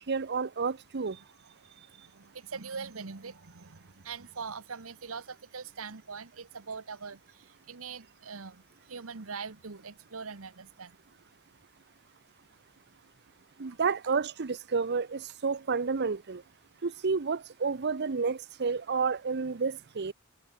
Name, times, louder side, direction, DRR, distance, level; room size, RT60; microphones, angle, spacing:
voice 1, 0.0-1.2 13.6-16.4 16.8-20.1, right 5 dB, 55° right, 0.7 m, -30 dB
voice 2, 1.2-11.0 13.7-13.8, right 5 dB, 75° right, 1.2 m, -43 dB
head